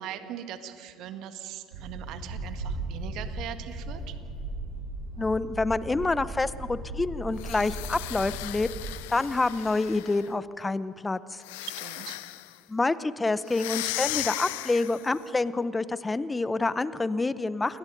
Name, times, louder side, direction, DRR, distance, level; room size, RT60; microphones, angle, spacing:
voice 1, 0.0-4.1 11.6-12.2, right 10 dB, 60° right, 8 dB, 1.6 m, -40 dB
sound 1, 1.7-8.9, right 2 dB, 75° right, 4.2 m, -37 dB
voice 2, 5.2-8.7 9.1-11.4 12.7-17.8, left 3 dB, 20° left, 15 dB, 0.9 m, -27 dB
sound 2, 7.3-10.3 11.4-12.6 13.5-15.2, left 19 dB, 70° left, 0.6 m, -36 dB
29.5 x 21.0 x 5.4 m, 2.2 s
figure-of-eight pair, 55°, 0 cm